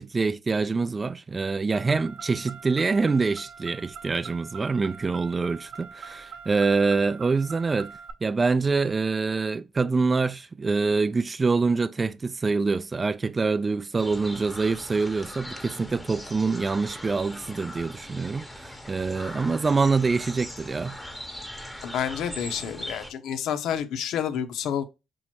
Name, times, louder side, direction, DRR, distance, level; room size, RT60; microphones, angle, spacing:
voice 1, 0.0-7.9 8.2-21.0, right 4 dB, 30° right, 0.3 m, -25 dB
Car, 1.7-8.1, right 6 dB, 70° right, 0.7 m, -43 dB
sound 1, 14.0-23.1, left 1 dB, 5° left, 0.8 m, -40 dB
voice 2, 21.8-24.8, left 8 dB, 70° left, 0.6 m, -29 dB
4.5 x 2.1 x 4.3 m
hypercardioid pair, 55°, 0 cm